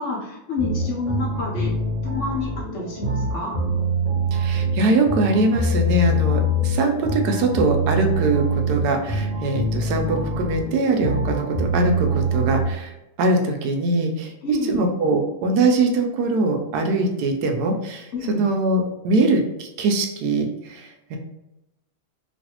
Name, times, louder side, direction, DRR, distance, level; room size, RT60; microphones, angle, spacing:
voice 1, 0.0-1.7 2.0-3.6 14.4-14.8 18.1-18.4, left 3 dB, 55° left, -3 dB, 1.0 m, -29 dB
sound 1, 0.6-12.6, right 1 dB, 60° right, 1.0 m, -24 dB
voice 2, 4.3-21.2, right 2 dB, 85° right, 4 dB, 1.1 m, -22 dB
3.1 x 2.6 x 2.8 m, 0.89 s
omnidirectional pair, 1.6 m